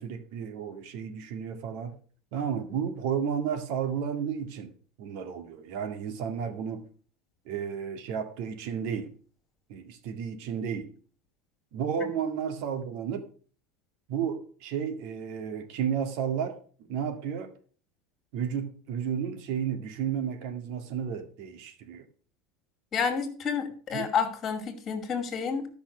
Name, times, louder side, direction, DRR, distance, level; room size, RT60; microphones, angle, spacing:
voice 1, 0.0-2.0 2.3-4.7 5.0-6.9 7.5-9.1 9.7-10.9 11.7-13.3 14.1-16.6 16.9-17.5 18.3-22.1 23.9-24.0, right 7 dB, 60° right, 2.0 m, -32 dB
voice 2, 22.9-25.7, left 6 dB, 25° left, 2.4 m, -29 dB
13.0 x 5.9 x 6.1 m
supercardioid pair, 150°, 0 cm